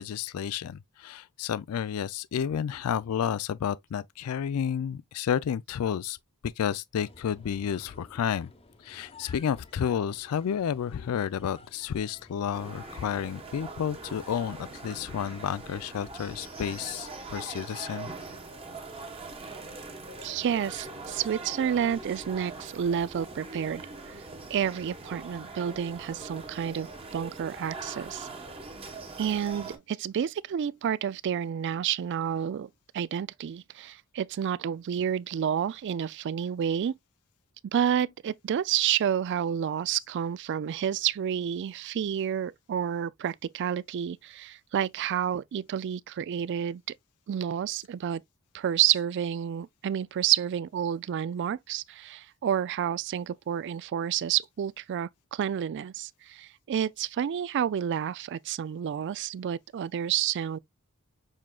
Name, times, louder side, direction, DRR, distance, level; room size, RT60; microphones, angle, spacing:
voice 1, 0.0-6.2 6.4-8.5 8.8-18.1, left 8 dB, 80° left, 0.4 m, -31 dB
sound 1, 7.0-17.2, left 3 dB, 25° left, 0.9 m, -54 dB
sound 2, 12.5-29.8, right 3 dB, 25° right, 1.2 m, -42 dB
voice 2, 20.2-24.2 24.5-26.9 27.1-28.3 29.2-36.9 37.6-46.8 47.3-48.2 48.5-60.6, right 9 dB, 55° right, 0.3 m, -30 dB
6.4 x 3.7 x 2.2 m
head